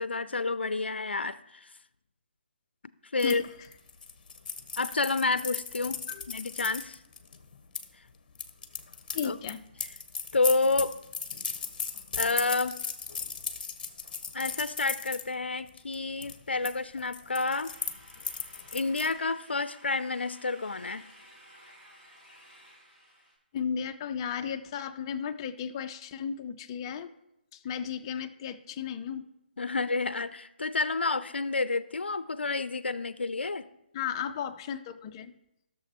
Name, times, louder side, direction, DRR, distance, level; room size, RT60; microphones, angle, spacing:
voice 1, 0.0-1.7 3.1-3.4 4.8-7.0 9.2-9.4 10.3-11.0 12.2-12.8 14.3-17.7 18.7-21.1 29.6-33.7, left 3 dB, 85° left, 15 dB, 0.4 m, -29 dB
sound 1, 3.2-7.8 8.3-15.2 15.7-15.9 16.2-16.7 17.0-19.1, left 5 dB, 50° left, 0.9 m, -37 dB
voice 2, 9.1-9.6 23.5-27.1 27.5-29.3 33.9-35.3, left 7 dB, 30° left, 10 dB, 0.5 m, -34 dB
sound 2, 17.7-23.4, equal, 10° right, 2.1 m, -55 dB
14.5 x 6.7 x 2.9 m, 0.85 s
figure-of-eight pair, 150°, 6 cm